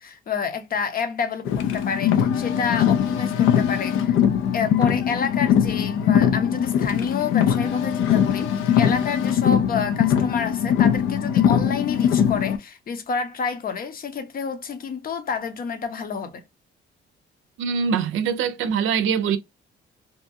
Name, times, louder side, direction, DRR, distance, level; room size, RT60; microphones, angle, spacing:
voice 1, 0.0-4.2 4.5-16.4, left 5 dB, 45° left, 0.7 m, -29 dB
Car, 1.4-12.6, left 9 dB, 85° left, 0.5 m, -21 dB
voice 2, 17.6-19.4, right 7 dB, 80° right, 0.5 m, -23 dB
2.7 x 2.2 x 2.5 m
cardioid pair, 90°, 20 cm